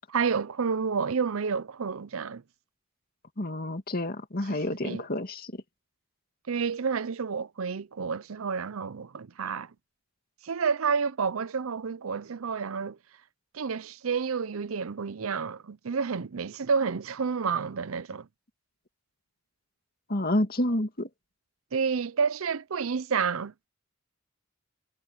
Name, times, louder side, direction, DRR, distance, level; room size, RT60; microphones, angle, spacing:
voice 1, 0.1-2.4 4.5-4.6 4.8-5.0 6.5-9.7 10.4-13.0 13.5-18.3 21.7-23.7, right 5 dB, 90° right, 0.6 m, -30 dB
voice 2, 3.4-5.6 20.1-21.1, left 1 dB, 45° left, 2.3 m, -29 dB
head